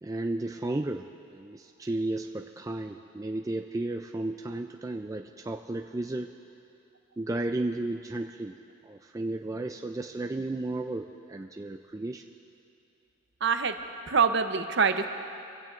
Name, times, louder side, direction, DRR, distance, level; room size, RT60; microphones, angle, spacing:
voice 1, 0.0-6.3 7.2-8.6 8.8-12.2, right 2 dB, 15° right, 4 dB, 0.3 m, -33 dB
voice 2, 13.4-13.8 14.1-15.1, right 5 dB, 55° right, 7 dB, 0.7 m, -24 dB
24.0 x 16.5 x 2.5 m, 2.6 s
head